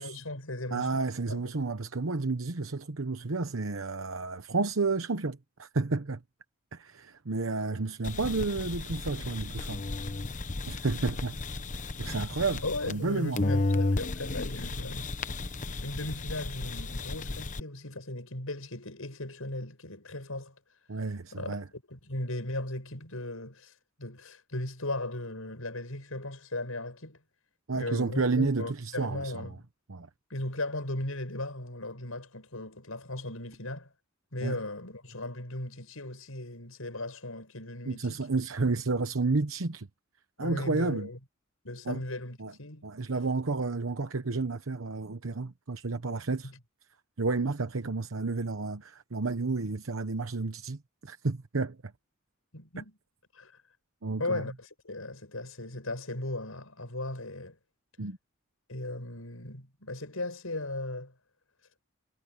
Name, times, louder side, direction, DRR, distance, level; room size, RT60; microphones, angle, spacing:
voice 1, 0.0-1.0 1.3-1.5 12.6-15.1 15.8-20.5 21.3-23.7 24.0-27.2 27.7-29.6 30.3-33.9 34.3-38.2 40.4-41.2 41.6-42.9 46.4-46.6 52.5-53.0 53.3-53.5 54.2-57.6 58.7-61.1, left 2 dB, 90° left, 6.6 m, -37 dB
voice 2, 0.7-6.2 6.7-9.8 10.7-11.4 11.7-13.4 20.9-21.6 27.7-29.5 29.9-30.1 34.4-34.6 37.9-39.9 40.4-41.1 41.9-42.0 42.4-42.5 42.8-46.5 47.2-51.8 54.0-54.4 58.0-58.2, right 3 dB, 75° right, 1.0 m, -31 dB
sound 1, 8.0-13.1 13.4-17.6, left 2 dB, 40° left, 0.9 m, -33 dB
head